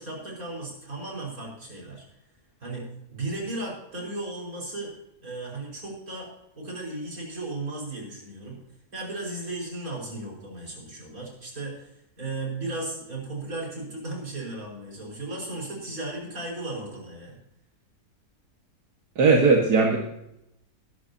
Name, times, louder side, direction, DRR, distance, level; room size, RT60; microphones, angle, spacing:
voice 1, 0.0-2.0 2.6-4.9 5.2-6.3 6.6-8.6 8.9-17.4, right 2 dB, 60° right, -2 dB, 5.6 m, -35 dB
voice 2, 19.2-20.0, right 4 dB, 85° right, 0 dB, 2.2 m, -18 dB
22.0 x 11.5 x 2.8 m, 0.81 s
omnidirectional pair, 1.7 m